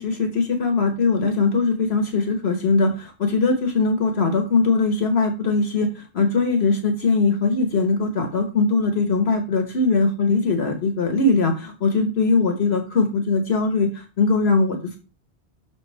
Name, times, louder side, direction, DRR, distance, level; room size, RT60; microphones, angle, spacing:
voice 1, 0.0-15.0, left 3 dB, 70° left, 5 dB, 1.4 m, -21 dB
6.2 x 5.2 x 5.6 m, 0.33 s
omnidirectional pair, 1.1 m